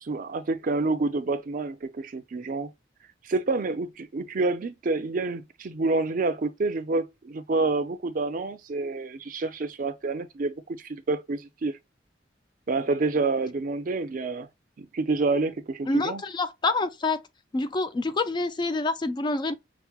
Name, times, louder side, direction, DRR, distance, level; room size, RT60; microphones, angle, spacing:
voice 1, 0.0-2.7 3.2-11.7 12.7-14.5 14.8-16.2, right 3 dB, 50° right, 0.5 m, -28 dB
voice 2, 15.9-17.2 17.5-19.5, left 3 dB, 25° left, 0.3 m, -27 dB
5.8 x 2.1 x 2.3 m
head